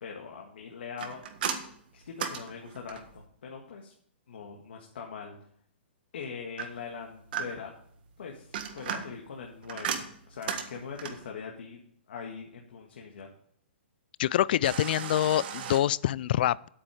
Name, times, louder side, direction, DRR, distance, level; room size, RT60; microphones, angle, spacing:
voice 1, 0.0-1.2 1.9-3.9 4.3-5.4 6.1-7.7 8.2-11.8 12.1-13.3, left 6 dB, 70° left, 1 dB, 1.7 m, -42 dB
sound 1, 1.0-3.2 6.6-7.8 8.3-11.3 14.6-15.8, right 7 dB, 55° right, 1.5 m, -36 dB
voice 2, 14.2-16.7, left 12 dB, 55° left, 22 dB, 0.3 m, -26 dB
8.8 x 8.5 x 5.0 m, 0.65 s
hypercardioid pair, 145°, 6 cm